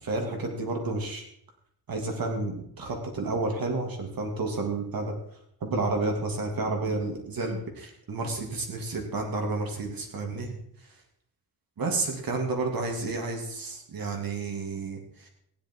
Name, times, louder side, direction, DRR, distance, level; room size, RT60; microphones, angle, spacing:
voice 1, 0.0-1.2 1.9-5.1 5.6-10.6 11.8-15.3, right 3 dB, 65° right, 2 dB, 2.9 m, -31 dB
15.5 x 11.0 x 4.7 m, 0.71 s
wide cardioid pair, 140°, 38 cm